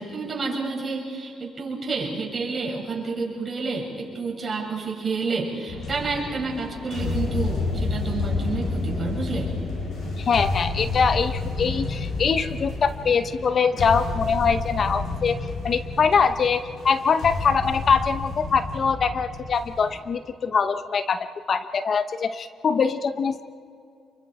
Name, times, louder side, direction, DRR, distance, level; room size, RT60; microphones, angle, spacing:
voice 1, 0.0-9.5, right 4 dB, 35° right, -2 dB, 7.1 m, -29 dB
sound 1, 5.7-20.0, left 3 dB, 75° left, 7.7 m, -30 dB
voice 2, 10.2-15.4 15.6-21.2 21.5-23.4, left 5 dB, 50° left, 11 dB, 0.8 m, -23 dB
28.5 x 23.5 x 4.9 m, 2.5 s
cardioid pair, 90°, 0 cm